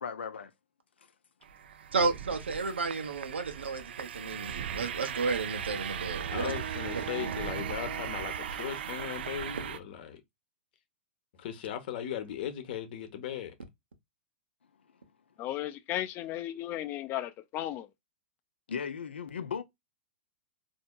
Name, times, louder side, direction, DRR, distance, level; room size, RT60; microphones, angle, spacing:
voice 1, 0.0-0.5 7.6-8.1 18.7-19.6, left 6 dB, 80° left, 0.6 m, -37 dB
sound 1, 1.4-9.8, right 8 dB, 70° right, 0.4 m, -38 dB
voice 2, 1.9-6.5 6.9-7.3, right 4 dB, 85° right, 0.9 m, -32 dB
voice 3, 6.3-10.2 11.4-13.6, left 9 dB, 55° left, 0.9 m, -38 dB
voice 4, 15.4-17.9, left 13 dB, 35° left, 0.6 m, -35 dB
4.3 x 2.7 x 2.3 m
hypercardioid pair, 105°, 6 cm